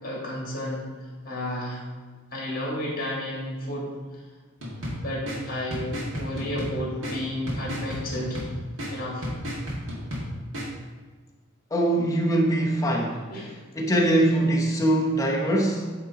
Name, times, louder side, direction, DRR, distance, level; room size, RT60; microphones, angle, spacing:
voice 1, 0.0-0.9 1.2-1.8 2.3-3.9 4.9-8.4 8.9-9.3 13.3-13.5, left 1 dB, 45° left, -3 dB, 1.9 m, -32 dB
sound 1, 4.6-10.7, equal, 75° right, 1.9 m, -34 dB
voice 2, 11.7-13.3 13.8-15.9, right 1 dB, 15° left, -1 dB, 0.8 m, -22 dB
8.5 x 3.7 x 4.0 m, 1.4 s
head